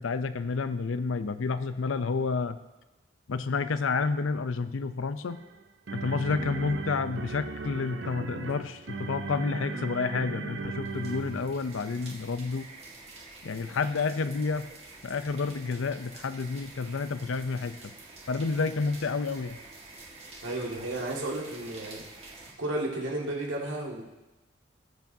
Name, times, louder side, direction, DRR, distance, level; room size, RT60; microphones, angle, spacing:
voice 1, 0.0-2.6 3.3-5.4 5.9-12.7 13.4-14.7 15.0-17.9 18.3-19.6, left 4 dB, 90° left, 12 dB, 0.6 m, -30 dB
sound 1, 5.3-11.7, right 4 dB, 65° right, 0.6 m, -37 dB
sound 2, 10.8-22.5, right 3 dB, 30° right, 1.6 m, -48 dB
voice 2, 20.4-22.0 22.6-24.0, right 1 dB, 80° right, -2 dB, 2.1 m, -33 dB
19.0 x 7.0 x 2.7 m, 1.0 s
head